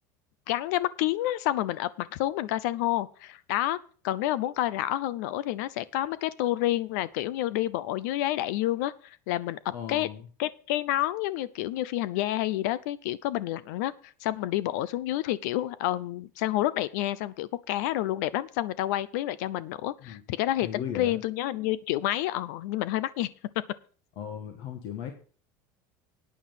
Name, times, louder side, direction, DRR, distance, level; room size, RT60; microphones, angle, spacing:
voice 1, 0.5-3.8 4.0-10.1 10.4-23.3, left 14 dB, 75° left, 18 dB, 0.6 m, -29 dB
voice 2, 9.7-10.3 20.0-20.2 20.6-21.2 24.1-25.1, left 8 dB, 55° left, 4 dB, 1.5 m, -37 dB
9.5 x 8.6 x 5.8 m, 0.42 s
cardioid pair, 160°, 9 cm